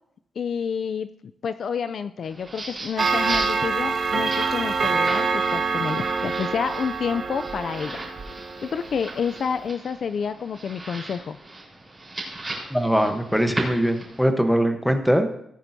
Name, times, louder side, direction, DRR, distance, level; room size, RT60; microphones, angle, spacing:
voice 1, 0.4-1.1 1.4-8.1 8.6-11.4, left 6 dB, 50° left, 11 dB, 0.3 m, -29 dB
sound 1, 2.2-14.2, right 2 dB, 20° right, 4.1 m, -37 dB
Clock, 3.0-9.0, right 4 dB, 45° right, 1.1 m, -25 dB
voice 2, 12.7-15.3, equal, ahead, 6 dB, 0.9 m, -21 dB
17.5 x 9.9 x 2.7 m, 0.74 s
wide cardioid pair, 165°, 0 cm